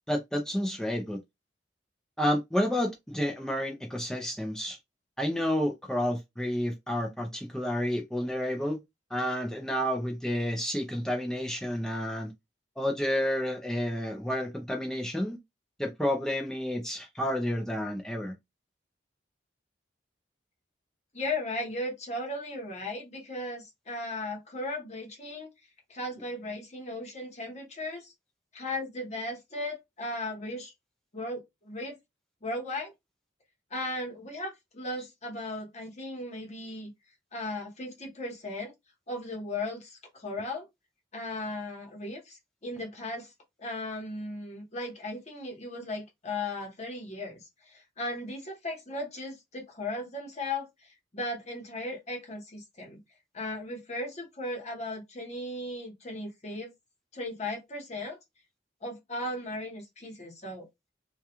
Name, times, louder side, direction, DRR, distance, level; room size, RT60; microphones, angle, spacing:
voice 1, 0.1-1.2 2.2-4.8 5.2-8.8 9.1-12.3 12.8-15.4 15.8-18.3, equal, 5° left, 0.4 m, -30 dB
voice 2, 21.1-25.5 25.9-28.1 28.5-30.7 31.1-32.0 32.4-32.9 33.7-36.9 37.3-38.7 39.1-40.7 41.1-43.3 43.6-53.0 53.3-56.7 57.1-58.2 58.8-60.7, left 2 dB, 40° left, 1.0 m, -36 dB
2.3 x 2.2 x 2.9 m
head